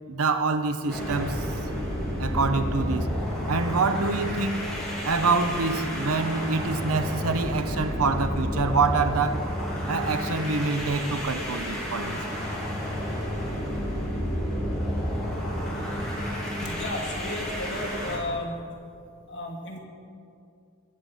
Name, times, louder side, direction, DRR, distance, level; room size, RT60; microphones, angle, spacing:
voice 1, 0.1-1.7 2.2-3.1 3.5-4.7 5.0-9.5 9.9-12.4, right 4 dB, 75° right, 0.8 m, -26 dB
sound 1, 0.9-18.2, equal, ahead, 3.2 m, -30 dB
voice 2, 16.6-18.6 19.3-19.8, left 1 dB, 55° left, 2.4 m, -33 dB
21.5 x 7.7 x 5.5 m
head